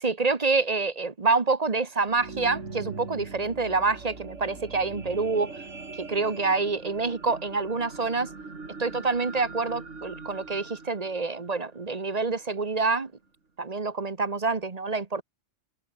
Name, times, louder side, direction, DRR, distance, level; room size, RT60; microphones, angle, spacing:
voice 1, 0.0-5.5 6.0-8.3 8.8-13.1 13.6-15.2, right 4 dB, 35° right, 1.3 m, -27 dB
sound 1, 1.9-12.3 12.9-13.0, right 3 dB, 85° right, 3.1 m, -42 dB
omnidirectional pair, 1.2 m